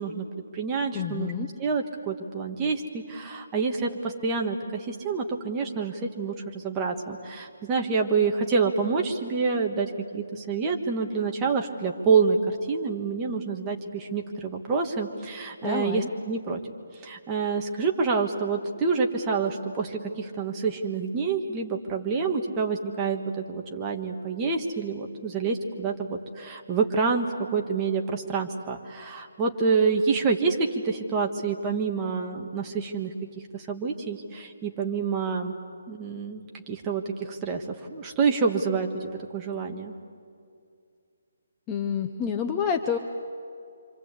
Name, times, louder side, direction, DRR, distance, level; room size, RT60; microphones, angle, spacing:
voice 1, 0.0-1.3 1.6-16.6 17.0-33.1 33.5-35.6 35.9-39.9, right 5 dB, 15° right, 1 dB, 1.5 m, -27 dB
voice 2, 0.9-1.5 15.6-16.1 41.7-43.0, left 7 dB, 15° left, 4 dB, 0.8 m, -28 dB
26.5 x 26.0 x 8.3 m, 2.3 s
hypercardioid pair, 170°, 0 cm